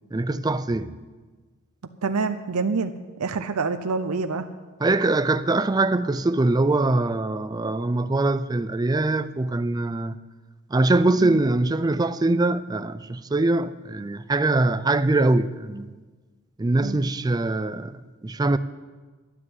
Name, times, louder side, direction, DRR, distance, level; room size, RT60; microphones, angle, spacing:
voice 1, 0.1-0.9 4.8-10.2 10.7-16.0 16.6-18.6, right 2 dB, 20° right, 0.4 m, -23 dB
voice 2, 2.0-2.9 3.2-4.5 11.2-11.4 16.8-17.0, right 4 dB, 85° right, 0.7 m, -26 dB
12.5 x 9.7 x 7.9 m
head